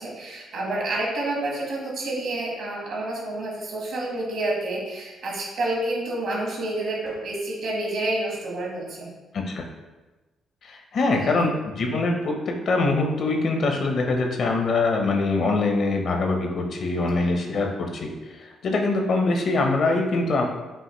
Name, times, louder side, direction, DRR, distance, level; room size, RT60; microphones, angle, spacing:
voice 1, 0.0-9.1 11.2-11.5 16.9-17.3, right 2 dB, 70° right, -2 dB, 1.4 m, -29 dB
voice 2, 9.3-9.7 10.6-20.5, left 3 dB, 60° left, 3 dB, 0.7 m, -24 dB
5.5 x 2.6 x 3.0 m, 1.2 s
cardioid pair, 90°, 0 cm